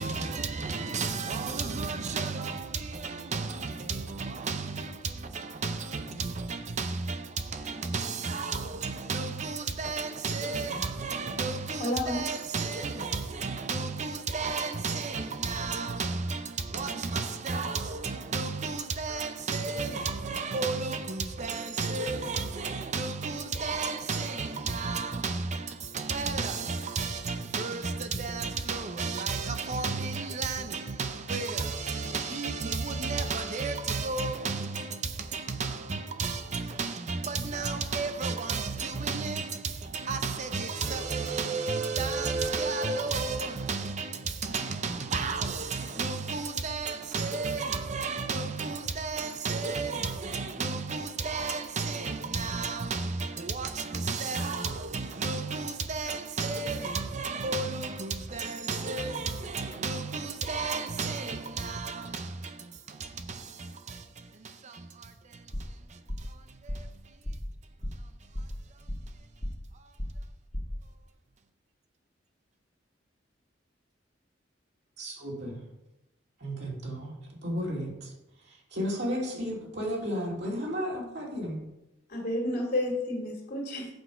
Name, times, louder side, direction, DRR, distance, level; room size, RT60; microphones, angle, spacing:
voice 1, 0.0-67.1 69.7-69.9, right 4 dB, 40° right, 0.6 m, -33 dB
voice 2, 11.8-12.3 82.1-83.9, left 1 dB, 50° left, 2.3 m, -30 dB
sound 1, 65.5-65.8 66.1-66.4 66.7-67.0 67.2-67.5 67.8-68.1 68.3-69.2 69.4-69.7 70.0-70.3 70.5-70.8, equal, 35° left, 1.7 m, -35 dB
voice 3, 75.0-75.6 76.4-77.1 77.4-78.1 78.5-81.6, equal, 60° right, 2.4 m, -33 dB
7.9 x 6.3 x 5.0 m
head